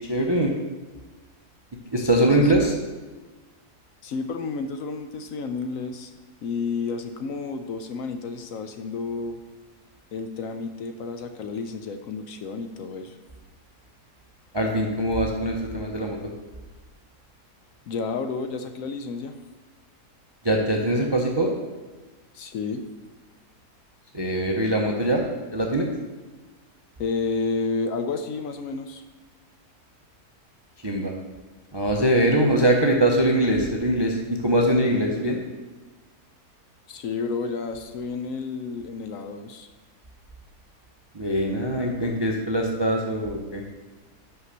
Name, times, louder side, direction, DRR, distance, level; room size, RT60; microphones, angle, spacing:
voice 1, 0.1-0.5 1.9-2.8 14.5-16.2 20.4-21.5 24.1-25.2 25.5-25.9 30.8-31.1 31.7-35.4 41.1-43.6, right 1 dB, 30° right, 1 dB, 0.4 m, -22 dB
voice 2, 2.0-2.5 4.0-6.1 6.4-9.4 10.1-13.2 17.9-19.3 22.3-22.8 27.0-29.0 36.9-39.7, left 4 dB, 70° left, 7 dB, 0.9 m, -31 dB
5.8 x 5.6 x 6.6 m, 1.2 s
omnidirectional pair, 1.7 m